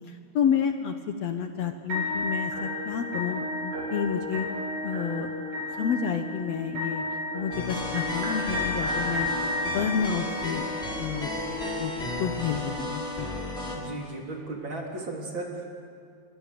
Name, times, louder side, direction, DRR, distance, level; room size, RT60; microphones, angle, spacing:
voice 1, 0.1-4.5 4.8-5.3 5.7-7.0 7.3-9.3 9.6-10.7 11.0-11.9 12.2-13.3, left 7 dB, 65° left, 7 dB, 2.0 m, -30 dB
sound 1, 1.9-11.9, left 2 dB, 75° right, 8.0 m, -32 dB
sound 2, 7.5-13.8, left 1 dB, 20° left, 4.4 m, -33 dB
voice 2, 13.7-15.7, right 2 dB, 40° right, 0 dB, 3.8 m, -36 dB
27.5 x 23.5 x 6.8 m, 2.3 s
omnidirectional pair, 3.5 m